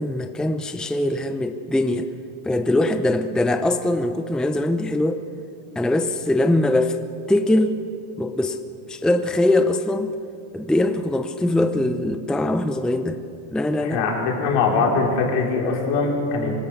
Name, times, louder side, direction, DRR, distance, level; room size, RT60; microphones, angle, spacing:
voice 1, 0.0-2.1 2.4-5.2 5.8-7.0 7.3-7.8 8.2-8.6 8.9-10.1 10.5-13.2 13.5-14.0, left 1 dB, ahead, 7 dB, 0.6 m, -22 dB
voice 2, 13.8-16.5, left 4 dB, 80° left, -1 dB, 5.1 m, -22 dB
25.0 x 18.0 x 6.7 m, 2.5 s
cardioid pair, 125°, 50 cm